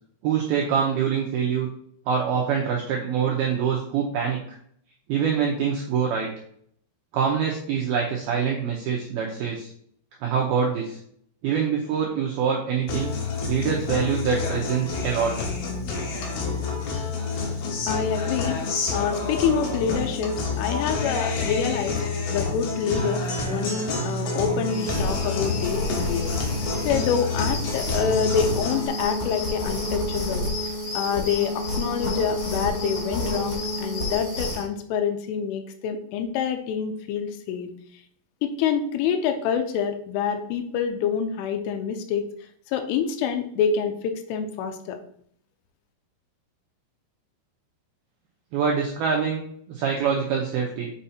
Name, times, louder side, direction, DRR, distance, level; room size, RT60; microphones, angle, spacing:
voice 1, 0.2-1.7 2.1-4.4 5.1-6.3 7.1-9.7 10.2-11.0 11.4-13.1 13.5-15.3 48.5-49.4 49.7-50.9, right 7 dB, 85° right, -2 dB, 2.2 m, -25 dB
Guitar, 12.9-28.9, left 4 dB, 65° left, 3.1 m, -28 dB
voice 2, 17.9-18.6 18.9-22.0 22.3-26.3 26.9-30.5 30.9-37.7 38.4-42.3 42.7-45.0, left 7 dB, 85° left, 7 dB, 3.2 m, -26 dB
sound 1, 24.7-34.7, left 1 dB, 45° left, 4.1 m, -29 dB
7.5 x 5.6 x 2.8 m, 0.63 s
omnidirectional pair, 5.6 m